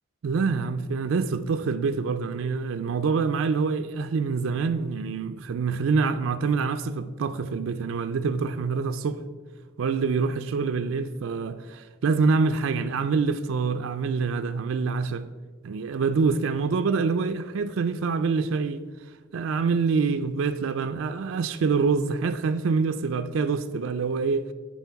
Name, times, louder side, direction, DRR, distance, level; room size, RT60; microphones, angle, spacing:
voice 1, 0.2-9.2 9.8-15.2 15.6-18.8 19.3-24.4, right 4 dB, 85° right, 0.4 m, -26 dB
12.5 x 4.5 x 4.6 m
head